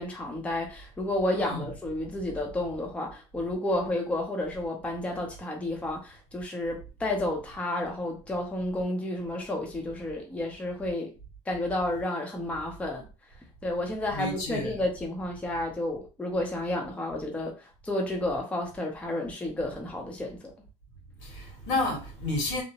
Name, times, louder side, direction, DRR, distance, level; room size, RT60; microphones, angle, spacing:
voice 1, 0.0-11.1 11.5-13.0 13.6-20.5, left 1 dB, 10° left, 0.6 m, -31 dB
voice 2, 1.4-1.7 14.1-14.8 21.2-22.6, left 2 dB, 85° left, 1.4 m, -31 dB
2.7 x 2.1 x 2.8 m
cardioid pair, 135°, 13 cm